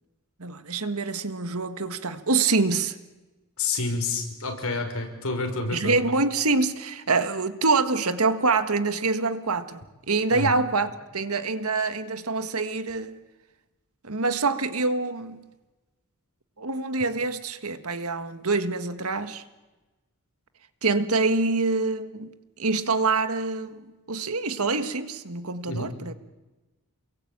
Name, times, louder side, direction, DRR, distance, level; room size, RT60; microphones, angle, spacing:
voice 1, 0.4-3.0 5.7-13.2 14.0-15.4 16.6-19.4 20.8-22.3 22.6-26.1, right 3 dB, 75° right, 1.7 m, -26 dB
voice 2, 3.6-6.0 10.3-10.5 25.7-25.9, left 3 dB, 70° left, 6.0 m, -29 dB
28.5 x 22.5 x 8.8 m
head